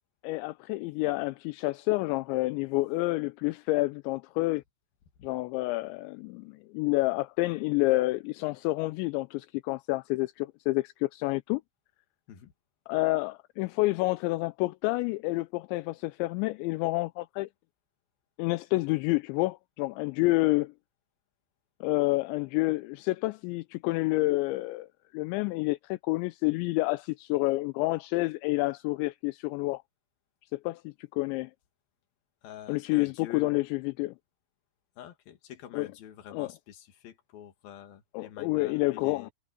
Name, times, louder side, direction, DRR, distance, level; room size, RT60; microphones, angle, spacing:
voice 1, 0.2-4.6 5.2-11.6 12.9-17.5 18.4-20.7 21.8-24.9 25.1-29.8 30.5-31.5 32.7-34.1 35.7-35.9 36.3-36.5 38.1-39.3, left 21 dB, 85° left, 2.9 m, -29 dB
voice 2, 32.4-33.5 35.0-39.3, left 10 dB, 60° left, 3.5 m, -46 dB
omnidirectional pair, 5.2 m